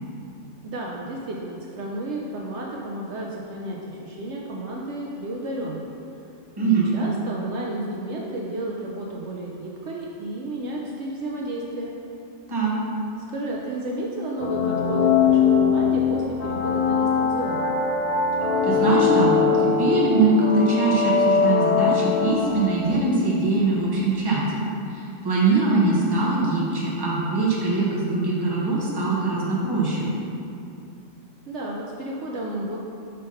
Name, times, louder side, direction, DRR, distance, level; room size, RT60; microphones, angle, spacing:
voice 1, 0.6-5.8 6.6-11.9 13.3-17.6 31.5-32.8, right 1 dB, 65° right, -3 dB, 0.8 m, -32 dB
voice 2, 6.6-6.9 12.5-12.7 18.6-24.4 24.9-30.1, right 3 dB, 20° right, -5 dB, 0.9 m, -22 dB
sound 1, 14.4-23.0, left 6 dB, 55° left, 0.4 m, -21 dB
5.4 x 3.5 x 5.4 m, 2.7 s
omnidirectional pair, 1.3 m